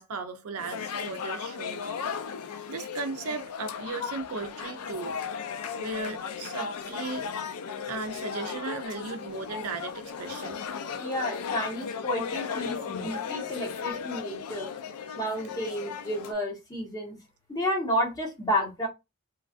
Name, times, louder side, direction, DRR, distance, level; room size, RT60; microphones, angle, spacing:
voice 1, 0.0-1.8 2.7-5.2 5.8-7.3 7.9-10.6, right 3 dB, 75° right, 0.6 m, -36 dB
sound 1, 0.6-16.3, left 6 dB, 85° left, 0.5 m, -36 dB
voice 2, 11.0-14.7 15.2-17.2 17.5-18.9, equal, 15° left, 1.1 m, -31 dB
3.1 x 2.3 x 2.4 m
head